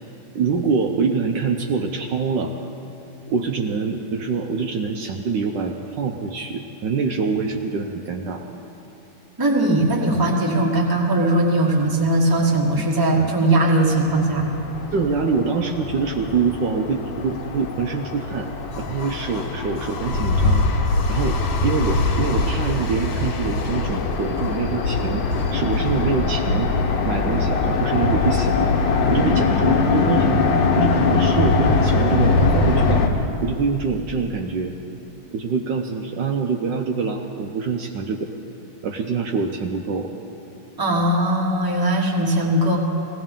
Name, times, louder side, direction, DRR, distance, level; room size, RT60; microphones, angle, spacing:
voice 1, 0.3-2.5 3.3-8.4 14.9-18.5 18.8-20.7 21.1-26.7 27.0-28.8 29.1-34.7 35.3-38.3 38.8-40.1, right 5 dB, 70° right, 3 dB, 1.2 m, -25 dB
voice 2, 9.4-14.5 40.8-42.8, right 1 dB, 10° right, -2 dB, 1.2 m, -19 dB
sound 1, 13.9-33.1, left 3 dB, 70° left, 1.8 m, -22 dB
18.5 x 17.0 x 3.7 m, 2.9 s
omnidirectional pair, 2.3 m